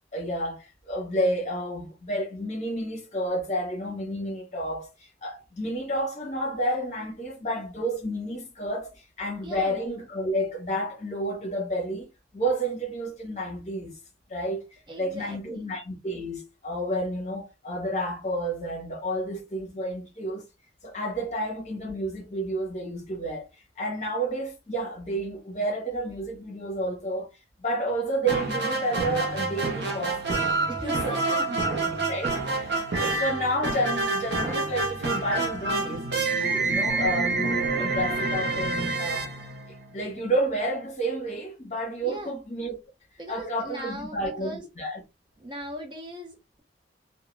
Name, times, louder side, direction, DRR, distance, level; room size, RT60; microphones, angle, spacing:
voice 1, 0.1-12.1 12.3-14.0 14.3-14.6 15.0-20.4 20.8-23.5 23.8-27.3 27.6-31.2 31.7-39.3 39.7-42.8 43.3-45.0, right 1 dB, 40° left, 0.9 m, -30 dB
voice 2, 9.4-9.8 14.9-15.7 30.7-31.6 42.0-42.4 43.2-44.6 45.4-46.6, equal, 25° right, 0.6 m, -39 dB
sound 1, 28.2-40.1, right 3 dB, 75° right, 0.6 m, -28 dB
2.2 x 2.1 x 3.0 m
head